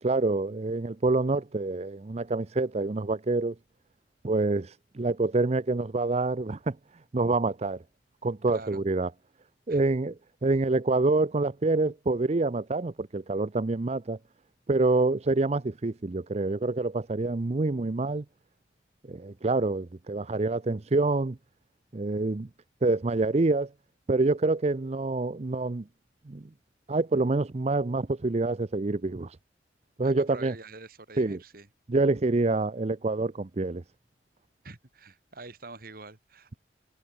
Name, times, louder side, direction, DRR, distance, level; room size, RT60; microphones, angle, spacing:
voice 1, 0.0-3.5 4.2-6.8 7.1-7.8 8.2-9.1 9.7-10.1 10.4-14.2 14.7-18.2 19.1-21.4 21.9-22.5 22.8-23.7 24.1-25.8 26.3-26.5 26.9-29.4 30.0-30.5 31.2-31.4 31.9-33.8, right 3 dB, 40° right, 0.6 m, -26 dB
voice 2, 8.5-8.8 9.7-9.9 30.0-31.7 34.6-36.6, right 3 dB, 55° right, 2.8 m, -46 dB
head